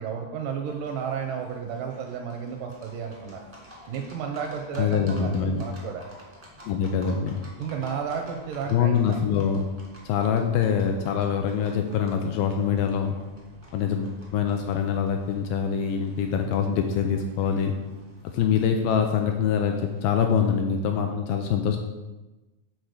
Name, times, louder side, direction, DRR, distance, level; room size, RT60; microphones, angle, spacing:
voice 1, 0.0-3.4 3.9-6.1 7.6-9.2, right 7 dB, 80° right, 3 dB, 2.0 m, -32 dB
Livestock farm animals working animals, 0.6-20.6, equal, 20° right, 0.7 m, -50 dB
voice 2, 4.8-5.6 6.7-7.4 8.7-9.7 10.0-13.2 13.7-17.8 18.3-21.8, left 7 dB, 80° left, 4 dB, 2.1 m, -24 dB
8.1 x 4.3 x 6.5 m, 1.1 s
omnidirectional pair, 4.5 m